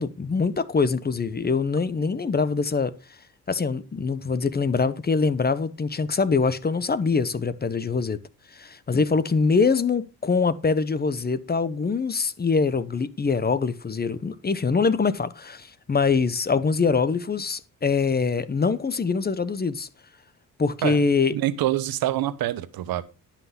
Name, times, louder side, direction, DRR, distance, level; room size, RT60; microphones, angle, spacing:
voice 1, 0.0-2.9 3.5-8.2 8.5-19.9 20.6-21.3, left 4 dB, 25° left, 0.9 m, -24 dB
voice 2, 21.3-23.0, right 13 dB, 75° right, 0.9 m, -26 dB
11.0 x 5.9 x 5.7 m
cardioid pair, 80°, 36 cm